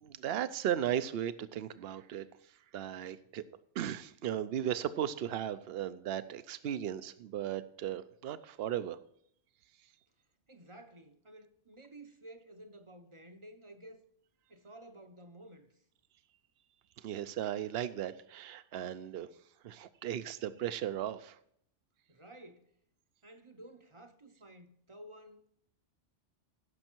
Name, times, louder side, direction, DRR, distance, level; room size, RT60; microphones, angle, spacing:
voice 1, 0.0-2.3 2.7-3.4 3.8-9.0 17.0-19.3 19.6-21.4, right 10 dB, 60° right, 0.8 m, -36 dB
voice 2, 10.5-14.1 14.5-15.8 22.1-22.8 23.2-25.5, right 1 dB, 30° right, 0.7 m, -53 dB
16.0 x 6.4 x 4.5 m
omnidirectional pair, 1.3 m